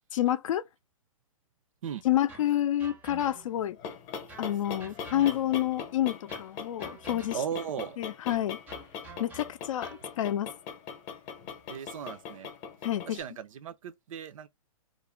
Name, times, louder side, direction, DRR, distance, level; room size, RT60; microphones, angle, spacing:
voice 1, 0.1-0.6 2.0-3.8 4.4-7.4 8.0-8.6 9.2-9.9 10.2-10.5 12.8-13.2, left 12 dB, 60° left, 0.4 m, -28 dB
sound 1, 2.3-3.7 4.3-5.8 6.3-7.6 8.3-10.1, right 4 dB, 10° right, 0.5 m, -49 dB
sound 2, 3.5-13.2, left 6 dB, 35° left, 0.7 m, -41 dB
voice 2, 7.3-8.0 11.7-12.5 13.1-14.5, right 8 dB, 65° right, 0.5 m, -37 dB
2.5 x 2.1 x 3.0 m
hypercardioid pair, 135°, 18 cm